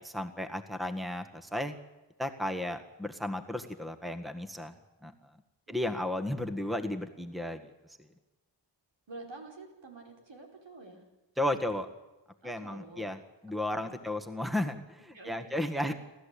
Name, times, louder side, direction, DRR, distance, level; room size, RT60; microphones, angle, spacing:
voice 1, 0.0-1.7 2.2-4.7 5.0-5.1 5.7-7.7 11.4-11.9 12.4-13.2 13.4-15.9, left 1 dB, ahead, 8 dB, 1.6 m, -34 dB
voice 2, 9.1-11.0 12.4-13.1 13.6-13.9 15.1-15.9, right 3 dB, 75° right, 1 dB, 5.1 m, -48 dB
29.0 x 13.5 x 8.6 m, 1.1 s
wide cardioid pair, 70°, 45 cm